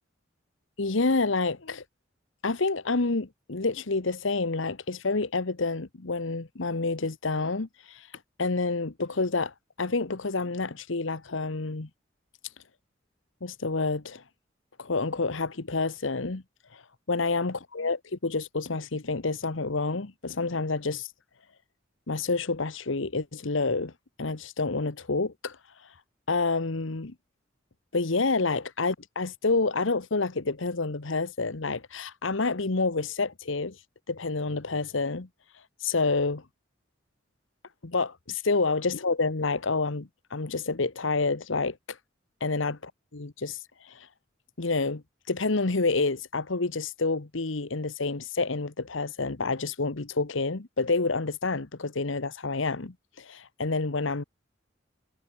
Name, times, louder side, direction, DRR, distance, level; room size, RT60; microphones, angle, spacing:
voice 1, 0.8-1.8 2.4-8.1 8.4-11.9 13.4-14.2 14.8-16.4 16.7-16.8 17.1-21.1 22.1-23.9 24.2-25.6 26.3-27.1 27.9-33.8 34.1-35.3 35.8-36.4 37.8-42.0 42.4-44.1 44.6-54.2, left 3 dB, 75° left, 1.2 m, -28 dB
head